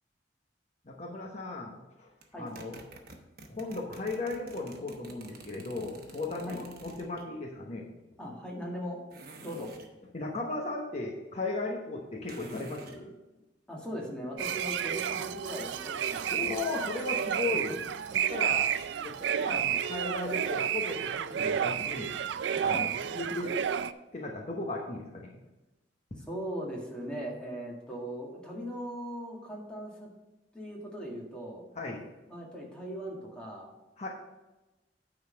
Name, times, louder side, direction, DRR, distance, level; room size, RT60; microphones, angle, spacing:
voice 1, 0.8-2.1 2.4-2.8 3.5-7.9 10.1-13.1 16.3-17.8 18.1-18.7 19.0-22.1 22.6-22.9 23.1-23.5 24.1-25.4 31.7-32.1 34.0-34.1, left 2 dB, 40° left, -1 dB, 1.0 m, -36 dB
sound 1, 2.2-7.3 9.1-9.9 12.3-13.0 15.7-16.7, right 3 dB, 60° right, 1.0 m, -50 dB
voice 2, 8.2-9.0 9.4-9.7 13.7-16.7 17.7-17.8 19.5-19.6 22.5-22.9 26.3-30.1 30.5-31.6 32.3-33.7, equal, 5° left, -3 dB, 1.8 m, -39 dB
sound 2, 14.4-23.9, right 9 dB, 85° right, 0.4 m, -31 dB
9.3 x 4.0 x 6.4 m, 1.0 s
head